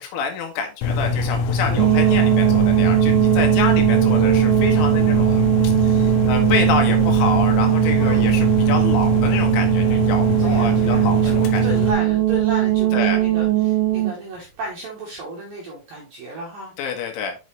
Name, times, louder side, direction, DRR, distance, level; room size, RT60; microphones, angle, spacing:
voice 1, 0.0-11.6 12.9-13.2 16.8-17.4, left 6 dB, 75° left, 3 dB, 3.7 m, -27 dB
sound 1, 0.8-11.9, left 3 dB, 90° left, 3.5 m, -23 dB
voice 2, 1.7-2.2 8.0-8.3 10.4-16.7, right 2 dB, 70° right, -2 dB, 2.2 m, -33 dB
sound 2, 1.8-14.1, right 16 dB, 85° right, 3.3 m, -19 dB
6.7 x 6.6 x 3.2 m, 0.31 s
omnidirectional pair, 5.9 m